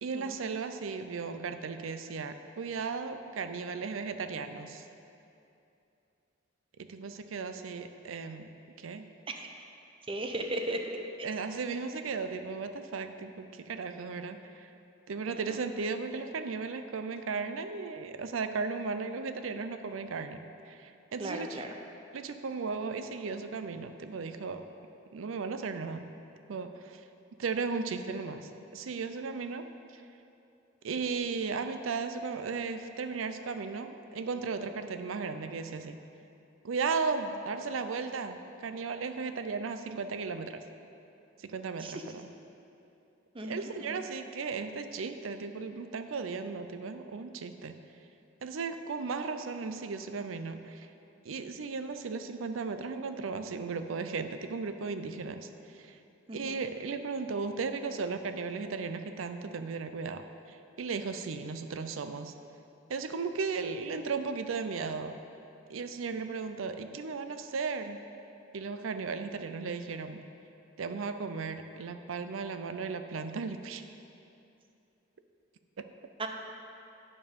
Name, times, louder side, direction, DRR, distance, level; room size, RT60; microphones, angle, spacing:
voice 1, 0.0-4.8 6.9-8.5 8.8-9.1 11.2-14.7 15.1-20.4 20.7-21.6 22.1-24.6 25.1-26.1 26.5-27.0 27.4-29.6 29.9-30.0 30.8-36.0 36.6-40.6 41.4-42.2 43.4-47.7 48.4-50.9 51.2-56.0 56.3-62.3 62.9-65.2 65.7-68.0 68.5-70.2 70.8-73.8 75.8-75.9, right 4 dB, 85° right, 9 dB, 0.5 m, -36 dB
voice 2, 10.1-10.9 11.2-11.3 15.3-15.6 21.2-21.7 41.8-42.0 43.3-44.0 56.3-56.6 76.2-76.3, right 1 dB, 25° right, 4 dB, 0.6 m, -37 dB
9.4 x 5.4 x 5.2 m, 2.7 s
head